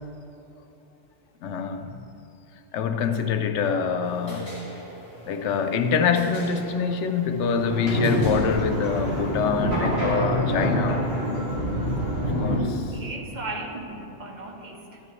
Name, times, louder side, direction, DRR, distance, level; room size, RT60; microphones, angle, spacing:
voice 1, 1.4-2.0 2.7-4.5 5.3-11.2 12.4-12.9, left 6 dB, 85° left, 0.9 m, -25 dB
sound 1, 4.0-9.9, equal, 20° right, 2.7 m, -43 dB
sound 2, 7.6-12.6, equal, 65° right, 3.0 m, -26 dB
voice 2, 12.8-15.0, right 2 dB, 45° right, 1.0 m, -36 dB
12.5 x 9.7 x 3.1 m
omnidirectional pair, 1.2 m